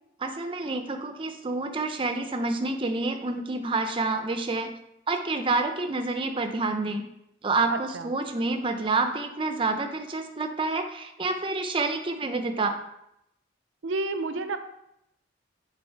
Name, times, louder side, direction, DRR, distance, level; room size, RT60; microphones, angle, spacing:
voice 1, 0.2-4.7 5.1-7.1 7.4-12.8, right 3 dB, 25° right, 6 dB, 0.5 m, -28 dB
voice 2, 7.7-8.1 13.8-14.6, right 3 dB, 80° right, 9 dB, 0.6 m, -30 dB
7.2 x 4.0 x 4.4 m, 0.80 s
head